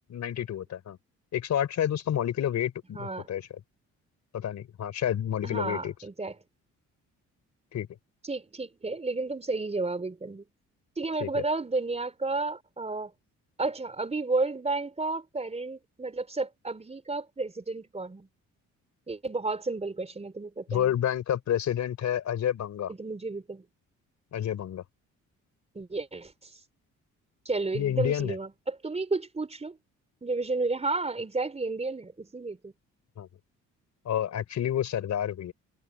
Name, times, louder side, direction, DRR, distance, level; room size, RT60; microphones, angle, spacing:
voice 1, 0.1-1.0 1.3-3.5 4.3-5.9 7.7-7.9 11.2-11.4 20.7-22.9 24.3-24.8 27.7-28.4 33.2-33.3 34.0-35.5, left 10 dB, 65° left, 4.1 m, -29 dB
voice 2, 2.9-3.3 5.4-6.3 8.2-10.4 11.0-13.1 13.6-18.3 19.1-20.9 22.9-23.6 25.7-26.5 27.5-29.8 30.2-32.7, right 3 dB, 20° right, 3.9 m, -32 dB
cardioid pair, 90°, 30 cm